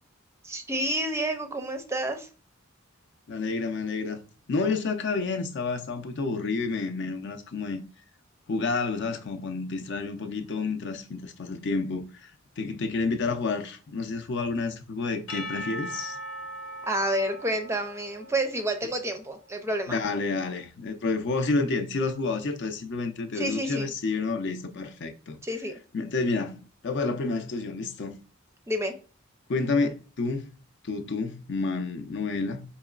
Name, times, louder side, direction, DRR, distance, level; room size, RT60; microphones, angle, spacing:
voice 1, 0.4-2.3 16.9-20.0 23.3-23.9 25.4-25.7 28.7-28.9, right 1 dB, 15° right, 0.5 m, -29 dB
voice 2, 3.3-4.2 4.5-7.8 8.5-12.3 12.6-16.2 19.9-25.4 25.9-28.2 29.5-30.5 30.9-32.6, left 3 dB, 60° left, 0.5 m, -29 dB
Percussion / Church bell, 15.3-19.5, equal, 90° left, 0.9 m, -40 dB
4.7 x 2.9 x 2.4 m
head